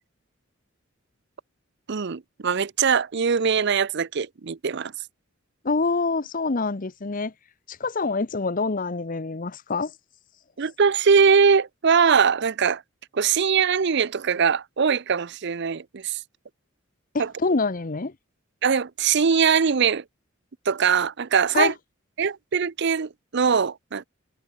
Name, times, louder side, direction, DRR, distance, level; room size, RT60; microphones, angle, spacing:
voice 1, 1.9-4.9 10.6-12.8 13.1-16.2 17.2-17.3 18.6-20.0 20.7-21.7 22.2-24.1, right 6 dB, 55° right, 0.6 m, -21 dB
voice 2, 5.6-7.3 7.7-9.9 17.1-18.1 21.5-21.7, left 3 dB, 40° left, 0.8 m, -26 dB
head